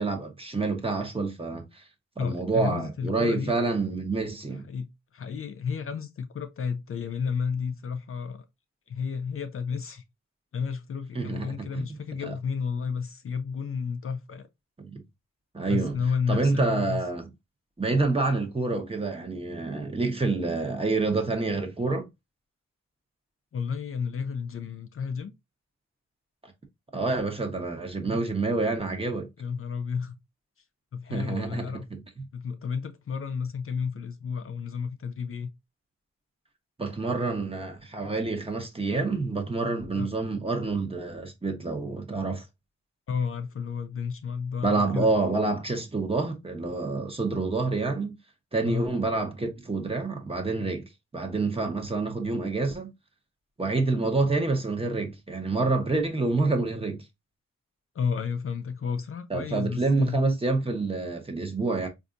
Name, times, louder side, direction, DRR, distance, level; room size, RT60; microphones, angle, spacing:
voice 1, 0.0-1.8 2.2-4.6 11.1-11.9 12.3-12.4 14.8-15.0 15.5-16.0 16.3-17.3 17.8-22.1 26.9-29.3 31.1-32.2 36.8-42.4 44.6-48.1 48.5-52.9 53.6-57.0 59.3-61.9, right 3 dB, 20° right, 0.9 m, -28 dB
voice 2, 2.2-3.5 4.6-8.4 8.9-10.0 10.5-14.5 15.7-17.0 23.5-25.3 29.4-30.2 30.9-31.9 32.3-35.5 39.9-40.1 43.1-45.1 48.6-48.9 57.9-60.2, left 6 dB, 50° left, 0.5 m, -32 dB
4.1 x 2.6 x 2.5 m
cardioid pair, 80°, 29 cm